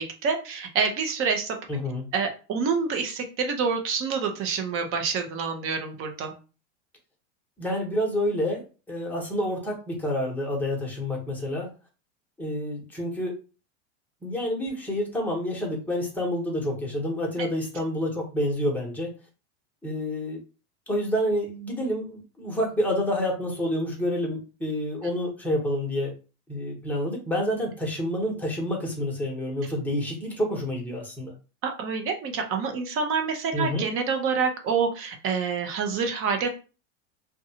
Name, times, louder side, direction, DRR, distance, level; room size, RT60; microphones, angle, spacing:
voice 1, 0.0-1.5 2.1-6.3 17.4-17.5 31.6-36.5, right 5 dB, 35° right, 5 dB, 0.7 m, -27 dB
voice 2, 1.7-2.0 7.6-11.7 12.4-13.3 14.2-19.1 19.8-20.4 20.9-26.1 26.5-31.3 33.5-33.8, left 1 dB, 5° left, -2 dB, 1.0 m, -28 dB
2.6 x 2.3 x 2.7 m, 0.33 s
hypercardioid pair, 110°, 36 cm